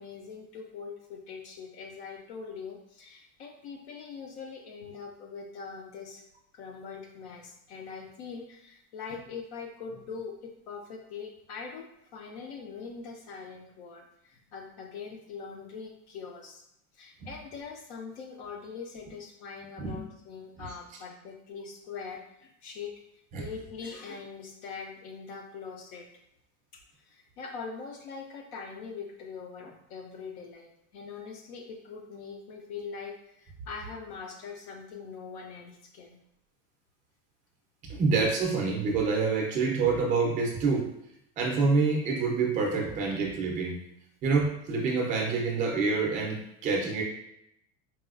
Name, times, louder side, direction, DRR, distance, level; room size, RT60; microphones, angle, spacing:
voice 1, 0.0-6.2 6.5-16.6 16.9-26.1 26.9-36.2, left 5 dB, 55° left, 2 dB, 0.5 m, -42 dB
voice 2, 37.9-40.9 41.4-43.8 44.2-47.0, right 4 dB, 20° right, 0 dB, 0.4 m, -27 dB
4.2 x 2.2 x 2.4 m, 0.80 s
supercardioid pair, 160°, 40 cm